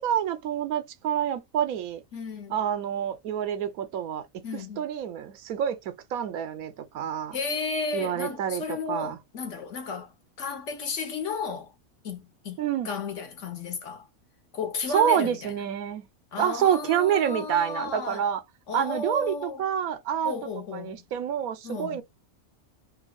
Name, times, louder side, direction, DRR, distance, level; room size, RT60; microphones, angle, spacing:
voice 1, 0.0-2.0 2.5-7.4 7.9-9.2 12.6-12.9 14.9-16.0 16.4-18.4 18.7-20.3 20.7-22.0, right 9 dB, 90° right, 1.2 m, -27 dB
voice 2, 2.1-2.6 4.4-4.9 7.3-10.1 10.4-11.7 12.0-14.1 14.5-15.5 16.3-18.2 18.7-19.7 20.2-21.0 21.6-22.0, left 4 dB, 60° left, 1.3 m, -33 dB
4.4 x 2.3 x 2.3 m
omnidirectional pair, 1.5 m